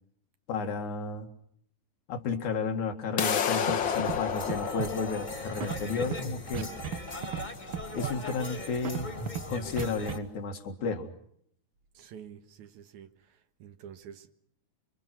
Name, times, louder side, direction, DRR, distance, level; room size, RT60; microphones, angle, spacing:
voice 1, 0.5-1.3 2.1-6.7 7.9-9.1 9.5-11.1, left 4 dB, 75° left, 3.5 m, -32 dB
sound 1, 3.2-9.2, left 8 dB, 50° left, 1.7 m, -32 dB
Scratching (performance technique), 3.7-3.8 4.0-4.2 4.5-4.9 5.6-6.2 6.5-7.0 7.2-7.5 7.7-8.2 8.8-9.4 9.8-10.1, right 8 dB, 55° right, 1.7 m, -34 dB
sound 2, 3.8-10.2, left 1 dB, 15° left, 2.0 m, -40 dB
voice 2, 11.9-14.3, right 8 dB, 75° right, 2.8 m, -49 dB
27.5 x 24.5 x 6.0 m
omnidirectional pair, 3.4 m